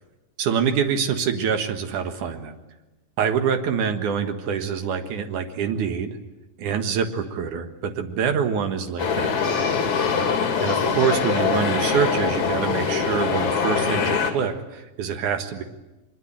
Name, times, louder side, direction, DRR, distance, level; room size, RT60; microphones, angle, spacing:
voice 1, 0.4-2.5 3.2-6.2 6.6-9.4 10.6-15.6, right 7 dB, 70° right, 7 dB, 3.0 m, -25 dB
sound 1, 9.0-14.3, left 6 dB, 60° left, 4.0 m, -23 dB
24.0 x 22.5 x 8.9 m, 1.1 s
omnidirectional pair, 3.8 m